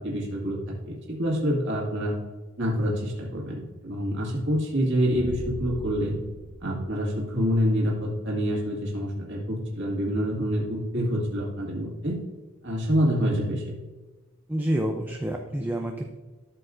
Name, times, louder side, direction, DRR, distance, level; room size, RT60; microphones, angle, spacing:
voice 1, 0.0-2.1 2.6-6.2 6.6-12.2 12.6-13.7, equal, 55° right, -4 dB, 2.1 m, -27 dB
sound 1, 5.1-7.7, equal, 30° left, 2.6 m, -39 dB
voice 2, 14.5-16.1, right 1 dB, 10° right, 2 dB, 0.5 m, -28 dB
12.5 x 6.7 x 2.6 m, 1.3 s
head